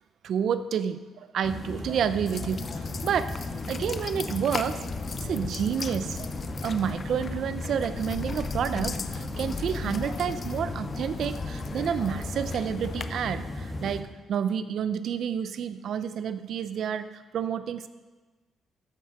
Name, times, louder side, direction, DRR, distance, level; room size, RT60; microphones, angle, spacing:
voice 1, 0.2-2.7 3.0-3.3 3.7-4.8 5.2-6.3 6.6-17.9, right 8 dB, 65° right, 12 dB, 0.6 m, -29 dB
sound 1, 1.4-14.0, left 2 dB, 25° left, 1.5 m, -36 dB
sound 2, 2.3-13.0, left 5 dB, 45° left, 0.6 m, -37 dB
14.0 x 5.7 x 6.1 m, 1.3 s
cardioid pair, 90°, 0 cm